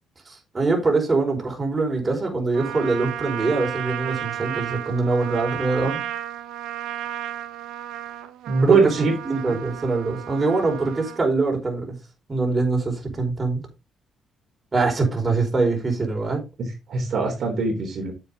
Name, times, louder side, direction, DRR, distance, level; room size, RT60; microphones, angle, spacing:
voice 1, 0.3-6.0 8.6-8.9 9.2-12.0 12.3-13.6 14.7-16.4, right 3 dB, 25° right, 4.6 m, -23 dB
Trumpet, 2.5-11.2, right 12 dB, 90° right, 1.1 m, -33 dB
voice 2, 8.5-9.1 16.9-18.1, right 4 dB, 60° right, 3.5 m, -21 dB
8.5 x 8.1 x 3.6 m
cardioid pair, 90°, 0 cm